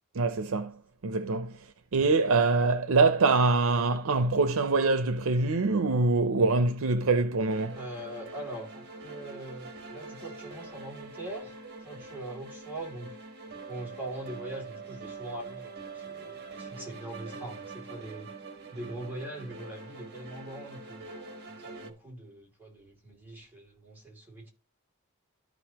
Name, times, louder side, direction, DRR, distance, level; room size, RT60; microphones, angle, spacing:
voice 1, 0.1-0.7 1.0-1.5 1.9-7.8, right 3 dB, 80° right, 0.6 m, -24 dB
sound 1, 7.4-21.9, right 3 dB, 50° right, 1.3 m, -44 dB
voice 2, 7.8-11.6 11.8-13.2 13.7-18.3 18.7-24.5, right 1 dB, 10° right, 2.6 m, -42 dB
13.5 x 5.1 x 2.9 m
head